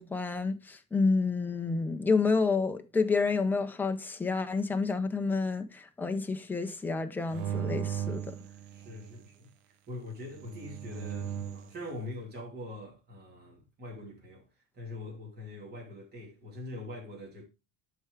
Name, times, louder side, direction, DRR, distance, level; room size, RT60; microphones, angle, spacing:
voice 1, 0.0-8.4, left 4 dB, 5° left, 0.5 m, -29 dB
sound 1, 7.3-9.3 10.3-11.8, right 10 dB, 85° right, 1.0 m, -37 dB
voice 2, 8.7-14.4 14.7-17.4, left 2 dB, 25° right, 2.8 m, -43 dB
12.0 x 4.7 x 3.4 m
cardioid pair, 165°, 37 cm